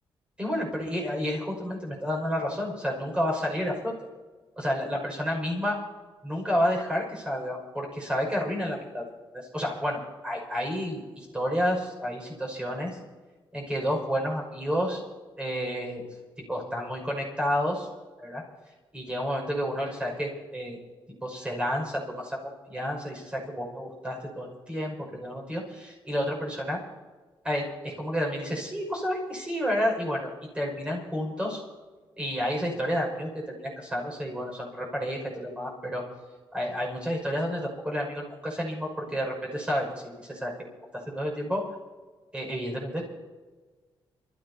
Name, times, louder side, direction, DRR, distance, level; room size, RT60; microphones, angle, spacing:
voice 1, 0.4-3.9 4.6-5.8 6.2-9.0 9.3-13.0 13.5-15.0 15.4-16.1 16.5-17.9 18.2-18.4 18.9-20.8 21.2-22.4 22.7-26.8 27.4-31.6 32.2-36.0 36.5-40.5 41.1-41.6 42.3-43.0, equal, 10° right, -1 dB, 5.8 m, -30 dB
28.0 x 14.5 x 2.9 m, 1.4 s
cardioid pair, 115°, 9 cm